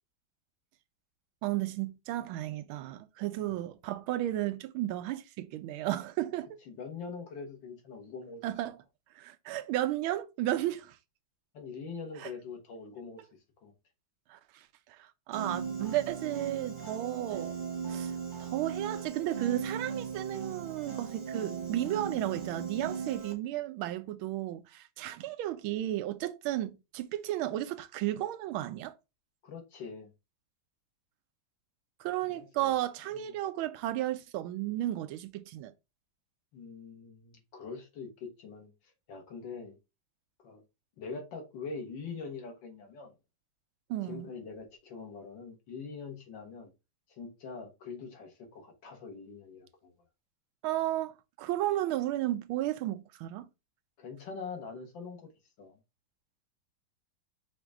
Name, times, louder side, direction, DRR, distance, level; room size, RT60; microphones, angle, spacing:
voice 1, 1.4-6.6 8.4-8.8 9.2-10.9 12.2-12.3 14.3-14.6 15.0-17.5 17.9-18.1 18.4-28.9 32.0-35.7 43.9-44.3 50.6-53.5, right 14 dB, 85° right, 1.4 m, -33 dB
voice 2, 6.7-8.5 11.5-13.3 13.6-13.7 29.4-30.1 32.3-32.8 33.1-33.3 36.5-38.7 39.1-39.8 40.4-40.6 41.0-43.1 44.1-46.7 47.1-49.9 54.0-55.3 55.6-55.8, left 5 dB, 65° left, 2.0 m, -43 dB
Piano, 15.3-23.3, right 6 dB, 30° right, 0.9 m, -38 dB
5.9 x 2.6 x 3.4 m
omnidirectional pair, 2.2 m